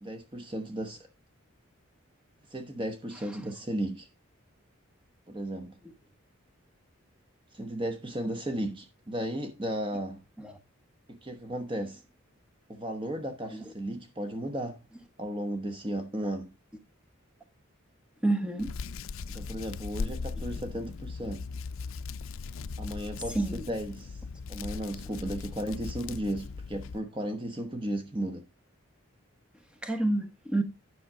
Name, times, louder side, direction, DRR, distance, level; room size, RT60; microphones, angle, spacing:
voice 1, 0.0-1.1 2.5-4.1 5.3-5.8 7.5-10.2 11.1-12.0 12.7-14.8 15.2-16.5 19.3-21.5 22.8-24.2 24.5-28.5, right 1 dB, 25° right, 1.0 m, -35 dB
voice 2, 18.2-18.7 20.0-20.1 23.3-23.7 29.8-30.6, right 2 dB, 5° right, 1.2 m, -29 dB
Hands, 18.6-27.0, left 4 dB, 70° left, 0.4 m, -38 dB
10.5 x 6.1 x 4.8 m
head